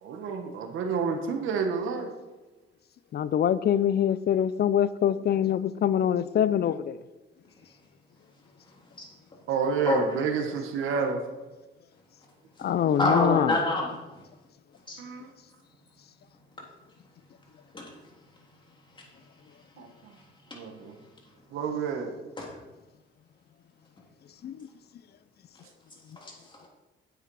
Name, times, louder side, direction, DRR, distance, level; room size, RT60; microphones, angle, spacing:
voice 1, 0.0-2.1 9.5-11.2 15.0-15.3 19.8-19.9 20.5-20.9 21.5-22.1, right 6 dB, 85° right, 4 dB, 1.3 m, -29 dB
voice 2, 3.1-7.0 12.6-13.6 24.4-24.7, left 9 dB, 55° left, 16 dB, 0.5 m, -24 dB
voice 3, 13.0-14.2 14.9-15.0 17.7-17.9 19.0-19.1 20.2-20.3 20.5-20.6 22.4-22.6 26.2-26.6, left 2 dB, 25° left, -2 dB, 3.4 m, -28 dB
8.9 x 8.2 x 4.8 m, 1.1 s
cardioid pair, 90°, 20 cm